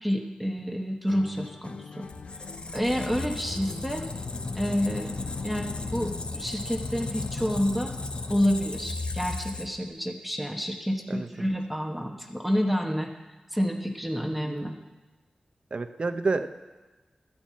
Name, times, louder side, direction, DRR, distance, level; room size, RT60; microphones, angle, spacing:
voice 1, 0.0-2.1 2.7-4.0 4.5-7.9 8.3-13.1 13.5-14.8, equal, 5° right, 2 dB, 1.1 m, -29 dB
sound 1, 1.1-6.4, left 4 dB, 75° left, 0.5 m, -43 dB
Squeak, 2.1-9.9, left 3 dB, 50° left, 0.7 m, -35 dB
voice 2, 14.4-14.7 15.7-16.5, right 3 dB, 55° right, 8 dB, 0.7 m, -29 dB
12.5 x 5.3 x 7.4 m, 1.2 s
cardioid pair, 50°, 2 cm